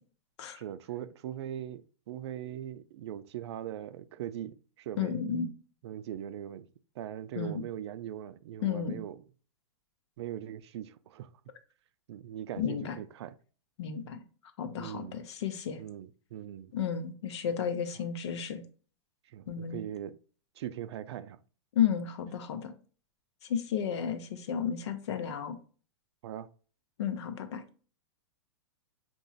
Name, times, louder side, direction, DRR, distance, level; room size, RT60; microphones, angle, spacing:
voice 1, 0.5-5.2 5.8-6.7 7.0-9.2 10.2-11.3 12.1-13.3 14.8-15.2 15.8-16.7 19.3-20.2 20.6-21.4 26.2-26.5, right 11 dB, 65° right, 0.4 m, -40 dB
voice 2, 5.0-5.5 7.4-7.6 8.6-9.0 12.6-13.0 13.8-14.2 14.6-15.8 16.7-18.6 19.5-19.8 21.7-22.7 23.4-25.6 27.0-27.6, left 8 dB, 65° left, 0.7 m, -32 dB
5.3 x 3.0 x 2.3 m
hypercardioid pair, 145°, 15 cm